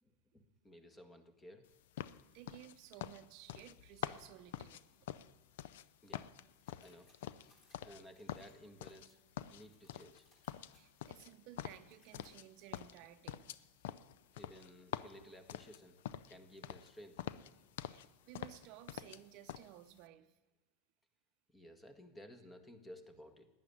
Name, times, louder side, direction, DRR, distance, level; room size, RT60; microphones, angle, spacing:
voice 1, 0.0-1.7 6.0-6.3 6.8-7.1 7.8-9.2 9.5-10.2 14.4-16.0 16.3-17.3 21.5-23.5, equal, 15° left, 7 dB, 1.6 m, -56 dB
sound 1, 2.0-5.9 6.1-8.0 8.3-9.1 9.4-10.2 10.5-12.5 12.7-16.4 16.6-16.9 17.2-18.1 18.3-19.2 19.5-19.7, left 12 dB, 75° left, 0.4 m, -46 dB
voice 2, 2.3-4.8 9.1-9.2 10.7-13.5 17.9-20.4, right 13 dB, 55° right, 11 dB, 0.6 m, -56 dB
sound 2, 6.5-12.8, left 2 dB, 40° left, 3.8 m, -72 dB
11.5 x 9.4 x 9.9 m, 1.2 s
hypercardioid pair, 90°, 0 cm